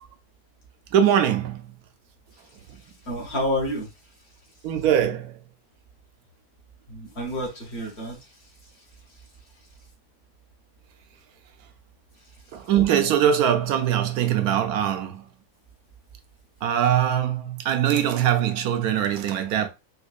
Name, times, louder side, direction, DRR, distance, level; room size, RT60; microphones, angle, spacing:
voice 1, 0.9-1.7 4.6-5.4 12.5-15.2 16.6-19.7, right 9 dB, 70° right, 1.0 m, -22 dB
voice 2, 3.0-3.9 6.9-8.2, equal, 40° left, 1.4 m, -29 dB
4.4 x 2.6 x 2.3 m
omnidirectional pair, 1.8 m